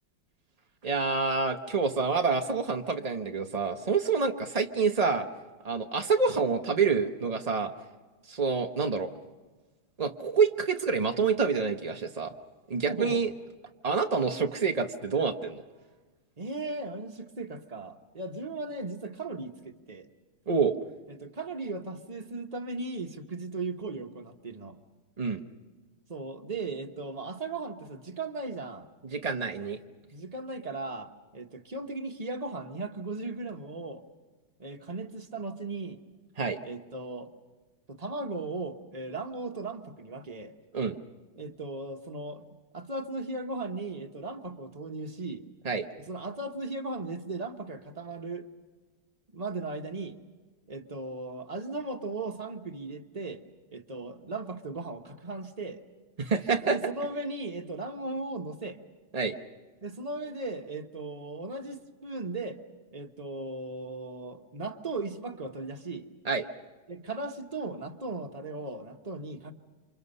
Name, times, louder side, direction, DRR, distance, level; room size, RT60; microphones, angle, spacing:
voice 1, 0.8-5.3 5.6-7.7 8.3-9.1 10.0-12.3 12.7-13.3 13.8-15.6 20.5-20.7 25.2-25.4 29.0-29.8 36.4-36.6 40.7-41.0 45.6-45.9 56.2-56.8 59.1-59.3 66.2-66.4, right 5 dB, 85° right, 4 dB, 0.3 m, -27 dB
voice 2, 12.9-13.2 16.4-20.1 21.1-24.8 26.1-28.9 30.1-34.0 34.6-36.0 36.6-37.3 37.9-40.5 41.4-45.4 46.1-48.5 49.3-50.2 50.7-53.4 53.7-55.8 56.6-58.8 59.8-62.6 62.9-66.1 66.9-69.5, right 3 dB, 30° right, 5 dB, 0.8 m, -37 dB
29.0 x 26.0 x 5.5 m, 1.3 s
omnidirectional pair, 2.3 m